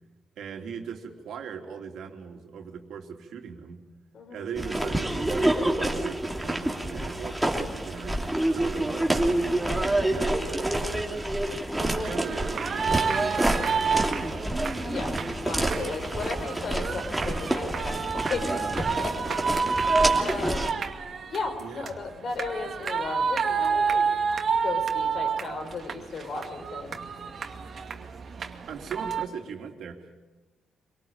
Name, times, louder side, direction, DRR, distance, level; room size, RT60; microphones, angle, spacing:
voice 1, 0.4-3.8 4.3-11.3 11.8-14.5 21.6-22.0 28.7-30.2, right 6 dB, 70° right, 3 dB, 3.2 m, -39 dB
voice 2, 4.1-4.5 11.5-11.6 14.8-15.1 15.4-18.5 18.8-19.4 20.1-20.7 21.3-24.1 24.6-27.0, left 4 dB, 55° left, 5 dB, 5.0 m, -35 dB
sound 1, 4.6-20.7, right 1 dB, 5° right, 3.0 m, -28 dB
sound 2, 12.0-29.2, right 5 dB, 50° right, 2.4 m, -30 dB
25.5 x 19.0 x 9.0 m, 1.2 s
cardioid pair, 90°, 0 cm